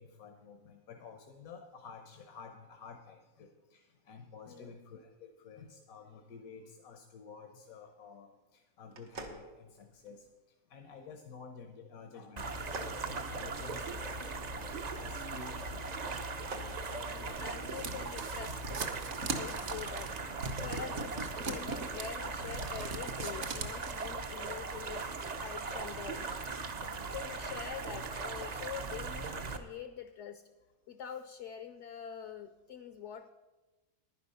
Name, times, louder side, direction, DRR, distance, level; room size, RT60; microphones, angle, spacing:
voice 1, 0.0-10.3 10.7-14.7 15.0-16.0 19.4-19.7 20.9-21.0 26.9-27.1 27.5-27.6, left 5 dB, 85° left, 5 dB, 1.4 m, -51 dB
voice 2, 4.5-4.8 13.6-13.9 17.1-18.8 19.3-20.1 20.6-26.3 27.0-30.4 30.9-33.3, left 8 dB, 65° left, 10 dB, 0.8 m, -45 dB
sound 1, 8.9-10.3 12.5-14.1 16.1-16.8, right 2 dB, 75° right, 1.6 m, -47 dB
sound 2, 12.4-29.6, right 4 dB, 45° right, 0.6 m, -39 dB
sound 3, 16.9-24.1, right 4 dB, 60° right, 1.3 m, -40 dB
10.5 x 10.0 x 5.5 m, 1.2 s
omnidirectional pair, 1.5 m